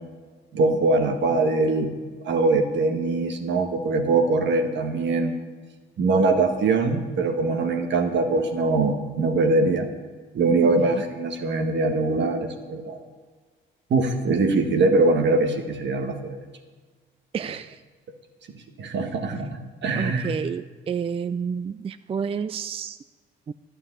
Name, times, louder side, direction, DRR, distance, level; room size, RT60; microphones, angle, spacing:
voice 1, 0.5-1.9 2.2-5.3 6.0-9.9 10.3-13.0 13.9-16.4 18.8-20.3, right 3 dB, 65° right, 5 dB, 1.7 m, -22 dB
voice 2, 10.6-11.0 17.3-17.8 20.0-23.0 23.5-23.6, right 7 dB, 30° right, 13 dB, 0.4 m, -30 dB
11.5 x 6.7 x 9.7 m, 1.5 s
cardioid pair, 90°, 20 cm